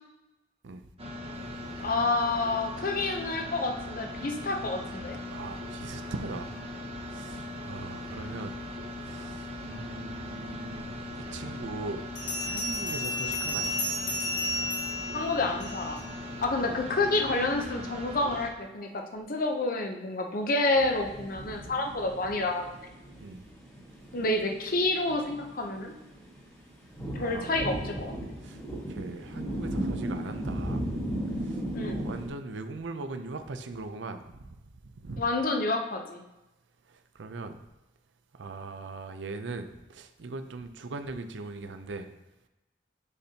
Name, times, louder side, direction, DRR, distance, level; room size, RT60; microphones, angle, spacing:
sound 1, 1.0-18.5, left 1 dB, 35° right, 0.8 m, -39 dB
voice 1, 1.8-5.2 15.1-16.0 16.4-22.7 24.1-25.9 27.2-28.1 31.7-32.0 35.2-36.2, left 2 dB, 50° left, 4 dB, 0.7 m, -29 dB
voice 2, 5.3-6.5 7.1-8.6 9.0-12.0 12.4-13.8 16.6-16.8 23.2-23.4 27.2-27.6 28.4-28.6 28.9-30.9 31.4-34.6 35.0-35.2 36.9-37.6 38.3-42.1, right 3 dB, 85° right, 8 dB, 0.5 m, -40 dB
Bell, 12.2-16.0, left 1 dB, 85° left, 2.1 m, -32 dB
sound 2, 20.7-32.3, right 1 dB, 15° left, 1.1 m, -36 dB
6.4 x 5.1 x 2.8 m, 0.99 s
head